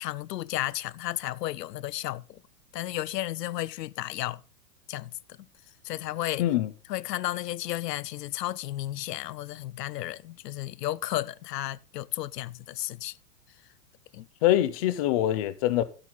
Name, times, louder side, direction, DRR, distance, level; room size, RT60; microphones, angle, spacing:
voice 1, 0.0-2.4 2.7-4.4 4.9-5.1 5.8-6.5 6.9-13.2 14.1-14.3, left 15 dB, 85° left, 0.6 m, -33 dB
voice 2, 6.4-6.7 14.4-15.8, left 13 dB, 25° left, 0.4 m, -24 dB
11.0 x 8.8 x 3.9 m
hypercardioid pair, 145°, 47 cm